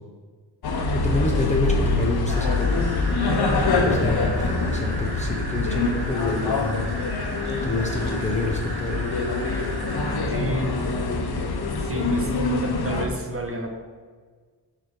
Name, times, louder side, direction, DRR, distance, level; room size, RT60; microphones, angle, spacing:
sound 1, 0.6-13.1, left 3 dB, 65° left, 0.7 m, -25 dB
voice 1, 0.9-2.8 3.7-6.8 7.6-9.2, left 2 dB, 15° left, -1 dB, 0.5 m, -27 dB
sound 2, 2.3-10.2, right 2 dB, 70° right, 0.9 m, -37 dB
voice 2, 10.3-10.7 11.8-12.3 12.6-13.7, right 1 dB, 35° right, 2 dB, 0.8 m, -30 dB
7.1 x 2.8 x 5.1 m, 1.5 s
wide cardioid pair, 145°, 41 cm